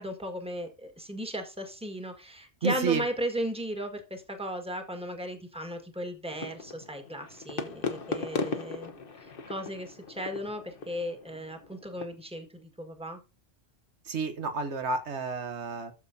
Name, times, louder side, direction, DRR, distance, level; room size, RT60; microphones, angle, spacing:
voice 1, 0.0-8.9 9.2-13.2, equal, 5° right, 4 dB, 1.6 m, -36 dB
voice 2, 2.6-3.0 14.1-15.9, right 4 dB, 75° right, 8 dB, 1.3 m, -30 dB
sound 1, 6.3-12.0, left 4 dB, 55° left, 1.2 m, -38 dB
13.0 x 7.0 x 2.7 m, 0.30 s
omnidirectional pair, 1.2 m